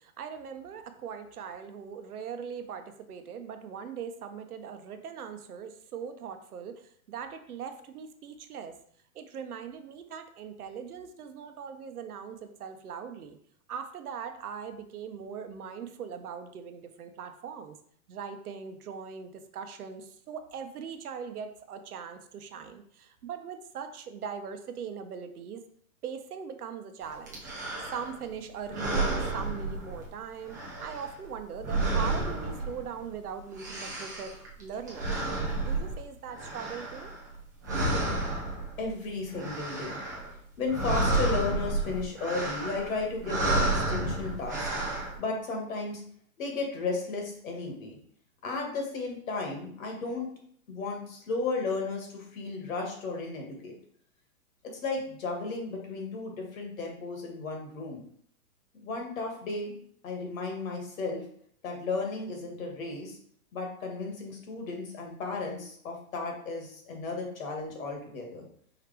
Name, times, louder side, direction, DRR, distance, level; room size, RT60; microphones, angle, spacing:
voice 1, 0.0-8.8 9.1-13.4 13.7-17.8 18.1-25.6 26.0-27.4 27.9-35.2 35.6-37.1, right 7 dB, 85° right, 8 dB, 0.8 m, -40 dB
sound 1, 27.3-28.2 28.6-30.2 30.5-33.1 33.4-37.4 37.6-38.9 39.2-40.3 40.6-45.2, right 2 dB, 15° right, 0.3 m, -31 dB
voice 2, 38.8-40.0 40.6-44.7 45.2-46.0 46.4-48.0 48.4-50.3 50.7-53.7 54.8-58.0 58.8-59.7 60.0-61.2 61.6-63.2 63.5-68.5, left 3 dB, 65° left, 1 dB, 1.7 m, -34 dB
4.8 x 3.0 x 3.4 m, 0.62 s
hypercardioid pair, 145°, 43 cm